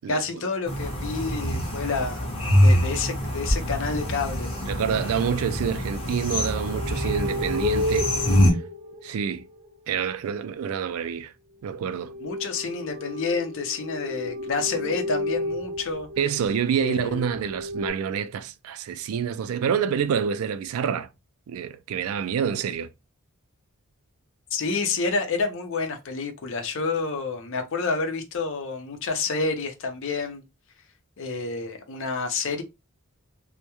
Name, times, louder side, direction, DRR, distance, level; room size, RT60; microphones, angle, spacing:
voice 1, 0.1-2.3 2.6-4.6 12.2-16.1 16.8-17.2 24.5-30.5 31.2-32.6, left 4 dB, 60° left, 0.5 m, -29 dB
sound 1, 0.7-8.5, equal, 25° left, 0.8 m, -24 dB
voice 2, 4.7-8.1 9.0-9.5 9.9-11.3 11.6-12.1 16.2-21.1 21.5-22.9, right 7 dB, 80° right, 0.3 m, -27 dB
sound 2, 5.5-9.7 11.9-17.9, left 2 dB, 30° right, 0.6 m, -33 dB
2.2 x 2.1 x 2.9 m
head